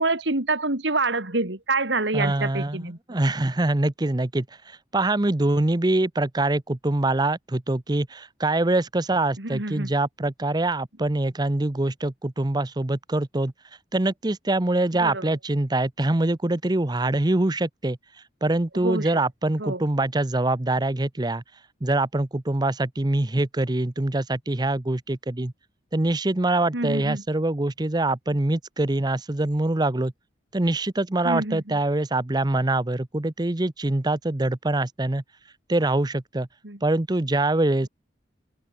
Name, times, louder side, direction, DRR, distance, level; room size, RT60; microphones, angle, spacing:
voice 1, 0.0-3.0 9.4-9.9 15.0-15.2 18.8-19.1 19.6-19.8 26.7-27.2 31.3-31.6 36.6-36.8, right 3 dB, 80° right, 3.3 m, -26 dB
voice 2, 2.1-13.5 13.9-21.4 21.8-25.5 25.9-30.1 30.5-35.2 35.7-36.5 36.8-37.9, right 2 dB, 25° right, 0.8 m, -24 dB
head